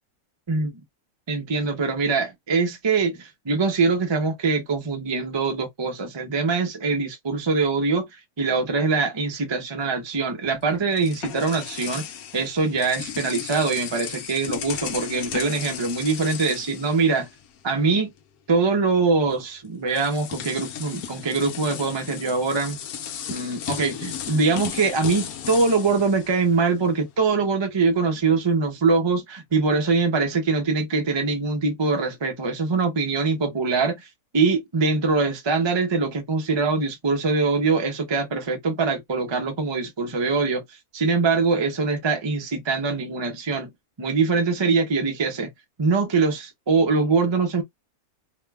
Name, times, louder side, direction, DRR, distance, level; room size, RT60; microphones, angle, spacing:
voice 1, 1.3-8.1 8.4-12.1 12.3-17.3 17.6-18.1 18.5-22.8 23.3-34.1 34.3-40.6 40.9-43.7 44.0-45.5 45.8-47.6, right 4 dB, 45° right, 0.3 m, -23 dB
sound 1, 10.5-17.7 18.0-18.2 19.3-19.4 19.9-27.0, left 9 dB, 75° left, 1.1 m, -35 dB
2.9 x 2.2 x 3.3 m
omnidirectional pair, 1.6 m